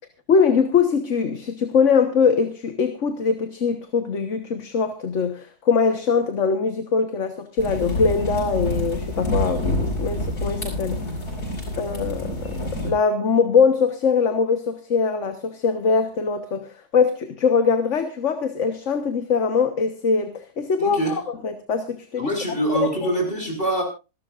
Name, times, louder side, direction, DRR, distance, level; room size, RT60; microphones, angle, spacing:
voice 1, 0.3-11.0 11.8-12.6 12.8-21.0 21.4-22.3 22.7-23.1, left 5 dB, 50° left, 1.6 m, -22 dB
sound 1, 7.6-12.9, left 1 dB, 80° left, 7.6 m, -27 dB
voice 2, 20.8-21.2 22.2-23.8, right 1 dB, 35° left, 6.1 m, -24 dB
27.0 x 12.5 x 2.5 m
omnidirectional pair, 1.6 m